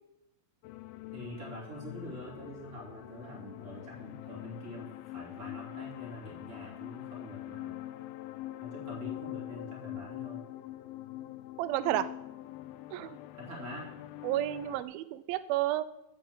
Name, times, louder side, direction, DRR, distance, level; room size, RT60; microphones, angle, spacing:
sound 1, 0.6-14.8, left 15 dB, 90° left, 2.5 m, -44 dB
voice 1, 1.1-7.8 8.6-10.4 13.3-13.9, equal, 25° right, -3 dB, 2.9 m, -45 dB
voice 2, 11.6-12.1 12.9-13.2 14.2-15.8, right 14 dB, 85° right, 14 dB, 2.4 m, -31 dB
7.7 x 7.2 x 7.9 m, 0.85 s
omnidirectional pair, 4.3 m